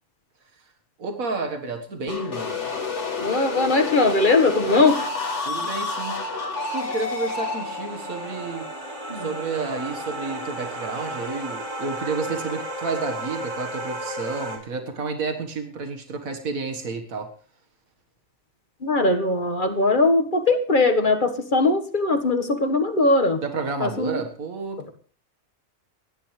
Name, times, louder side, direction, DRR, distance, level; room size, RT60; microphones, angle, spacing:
voice 1, 1.0-2.7 5.5-6.3 6.7-8.7 9.1-17.3 23.4-24.9, right 4 dB, 85° right, 4 dB, 2.1 m, -31 dB
sound 1, 2.1-9.8, left 4 dB, 60° left, 2.5 m, -30 dB
voice 2, 3.2-5.1 9.1-9.3 18.8-23.4 23.8-24.2, left 3 dB, 35° left, 6 dB, 1.7 m, -20 dB
sound 2, 6.1-14.6, right 1 dB, 65° right, 4.7 m, -34 dB
28.0 x 10.5 x 3.3 m, 0.43 s
omnidirectional pair, 1.4 m